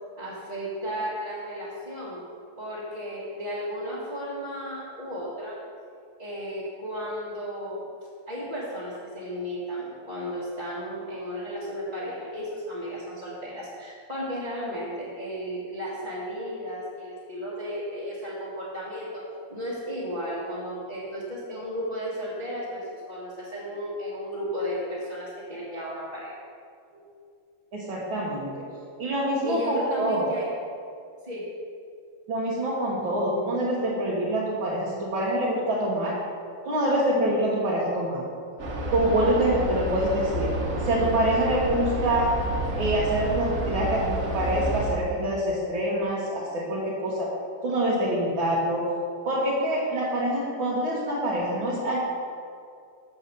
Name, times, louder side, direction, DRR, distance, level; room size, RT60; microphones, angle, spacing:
voice 1, 0.2-2.3 2.6-5.6 6.2-7.8 8.3-19.2 19.5-26.4 26.9-27.0 29.4-30.5 31.2-31.4, equal, 20° right, -10 dB, 1.6 m, -34 dB
voice 2, 27.7-28.5 29.0-30.2 32.3-36.1 36.7-38.3 38.9-40.5 40.8-42.3 42.7-47.3 47.6-48.8 49.3-52.0, right 1 dB, 70° right, -6 dB, 2.1 m, -25 dB
sound 1, 38.6-44.9, right 1 dB, 40° right, 1.7 m, -30 dB
7.2 x 6.7 x 6.7 m, 2.4 s
omnidirectional pair, 2.3 m